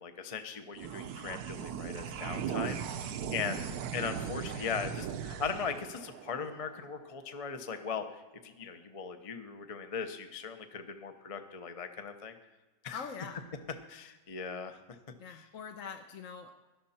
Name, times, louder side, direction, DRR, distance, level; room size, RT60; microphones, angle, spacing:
voice 1, 0.0-3.7 3.9-12.3 12.8-13.0 13.9-15.0 15.3-15.4, left 6 dB, 30° left, 7 dB, 0.6 m, -39 dB
sound 1, 0.7-7.5, right 8 dB, 65° right, 1.2 m, -39 dB
voice 2, 3.4-3.8 12.9-13.4 15.2-16.5, left 6 dB, 55° left, 5 dB, 1.1 m, -44 dB
17.5 x 12.0 x 4.3 m, 1.2 s
omnidirectional pair, 1.9 m